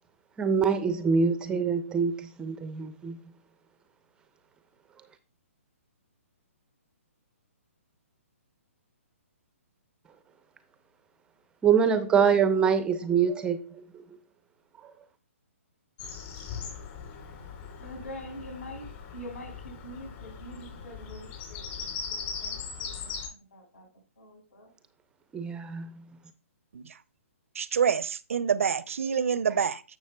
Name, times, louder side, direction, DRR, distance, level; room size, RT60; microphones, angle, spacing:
voice 1, 0.4-3.4 4.9-5.2 10.1-10.2 11.6-14.2 14.7-15.1 25.3-26.2 29.5-29.6, right 6 dB, 10° right, 0.5 m, -26 dB
Bird vocalization bird call bird song, 16.0-23.3, left 6 dB, 35° left, 3.4 m, -39 dB
voice 2, 17.8-23.9 24.2-24.7, equal, 70° left, 5.0 m, -45 dB
voice 3, 27.6-29.8, right 7 dB, 70° right, 0.5 m, -27 dB
11.5 x 7.2 x 2.2 m
hypercardioid pair, 135°, 8 cm